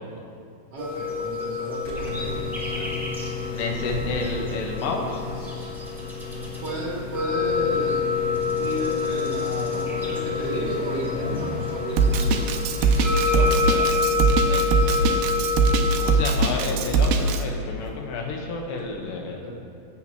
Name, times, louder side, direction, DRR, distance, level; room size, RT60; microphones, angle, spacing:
voice 1, 0.7-2.9 6.6-8.1 8.6-12.9 19.4-19.7, right 1 dB, 35° right, -4 dB, 1.8 m, -33 dB
sound 1, 0.8-16.1, left 5 dB, ahead, 1.0 m, -28 dB
sound 2, 1.8-19.0, left 2 dB, 30° left, 2.7 m, -35 dB
voice 2, 3.5-5.2 13.1-15.2 16.0-19.4, left 3 dB, 75° left, 1 dB, 3.4 m, -31 dB
Drum kit, 12.0-17.4, right 4 dB, 80° right, 2.3 m, -21 dB
23.5 x 8.6 x 3.0 m, 2.4 s
omnidirectional pair, 5.2 m